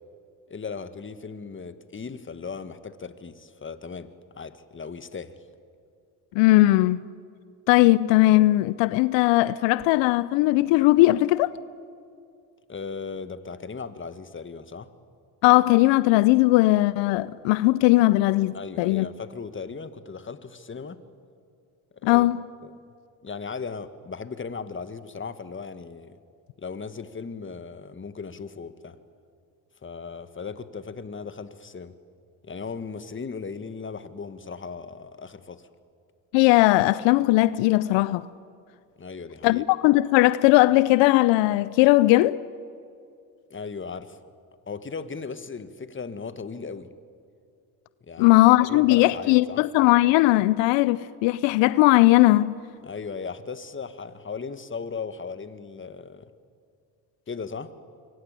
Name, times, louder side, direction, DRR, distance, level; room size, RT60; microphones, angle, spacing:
voice 1, 0.5-5.4 12.7-14.9 18.5-21.0 22.0-22.3 22.6-22.8 23.2-26.2 26.6-29.0 29.8-31.9 32.4-35.7 39.0-39.6 43.5-44.2 44.7-46.9 48.0-49.6 52.8-56.3 57.3-57.7, left 5 dB, 25° left, 1.6 m, -37 dB
voice 2, 6.3-7.0 7.7-11.5 15.4-19.1 22.0-22.4 36.3-38.3 39.4-42.4 48.2-52.6, left 18 dB, 80° left, 0.7 m, -19 dB
26.0 x 22.5 x 9.0 m
supercardioid pair, 75°, 44 cm